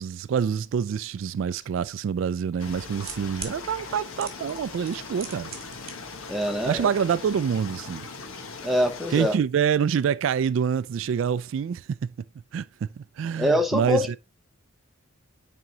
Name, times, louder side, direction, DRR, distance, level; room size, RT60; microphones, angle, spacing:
voice 1, 0.0-5.5 6.7-8.1 9.1-11.9 12.5-12.6 13.0-14.2, right 7 dB, 65° right, 0.3 m, -26 dB
sound 1, 1.6-1.7 2.6-3.6 4.2-4.6 4.9-5.9 6.2-6.3, right 6 dB, 30° right, 1.8 m, -38 dB
sound 2, 2.6-9.3, left 4 dB, 85° left, 1.1 m, -40 dB
voice 2, 6.3-6.9 8.6-9.3 13.4-14.2, equal, ahead, 0.7 m, -24 dB
9.1 x 3.8 x 2.8 m
head